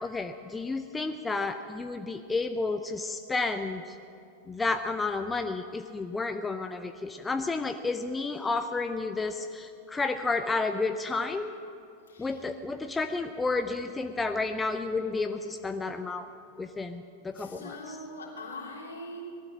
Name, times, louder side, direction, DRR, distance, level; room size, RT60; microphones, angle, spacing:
voice 1, 0.0-4.0 4.5-11.5 12.2-16.3 16.6-17.7, left 3 dB, 10° left, 7 dB, 0.6 m, -31 dB
voice 2, 12.1-12.4 17.3-19.2, left 1 dB, 70° left, -2 dB, 3.2 m, -42 dB
18.5 x 12.5 x 6.1 m, 2.5 s
figure-of-eight pair, 90°, 0 cm